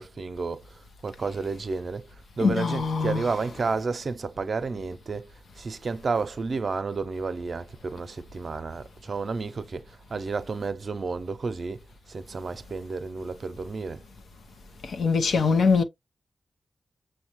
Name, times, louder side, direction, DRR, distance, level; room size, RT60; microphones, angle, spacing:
voice 1, 0.0-2.1 2.4-14.0, right 4 dB, 60° right, 0.5 m, -31 dB
voice 2, 2.4-3.5 14.9-15.8, left 5 dB, 85° left, 0.6 m, -23 dB
6.3 x 2.2 x 2.9 m
cardioid pair, 60°, 0 cm